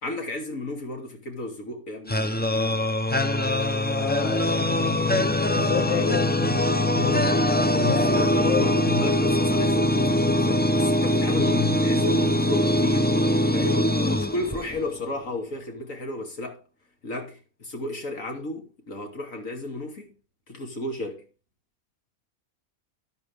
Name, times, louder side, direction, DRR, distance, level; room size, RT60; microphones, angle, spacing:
voice 1, 0.0-2.9 7.7-13.2 13.5-16.6 17.0-20.1 20.5-21.3, left 2 dB, 65° left, 3.0 m, -33 dB
sound 1, 2.1-15.0, left 1 dB, 15° left, 0.3 m, -22 dB
voice 2, 4.0-5.3 5.5-9.1 11.3-11.8, left 11 dB, 85° left, 1.2 m, -31 dB
12.5 x 10.0 x 3.4 m
omnidirectional pair, 1.5 m